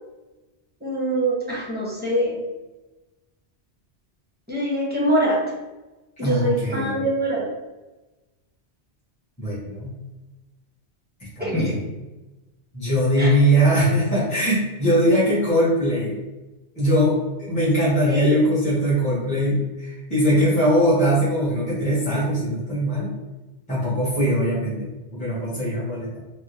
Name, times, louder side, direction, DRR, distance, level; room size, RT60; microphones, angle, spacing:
voice 1, 0.8-2.4 4.5-5.5 6.2-7.5 11.4-11.8 13.2-13.4 18.0-18.4, right 1 dB, 10° right, -5 dB, 0.8 m, -24 dB
voice 2, 6.2-7.0 9.4-9.9 11.4-11.7 12.7-16.2 16.8-23.1 23.7-26.2, equal, 5° left, -10 dB, 1.1 m, -21 dB
3.4 x 2.4 x 2.8 m, 1.1 s
omnidirectional pair, 1.1 m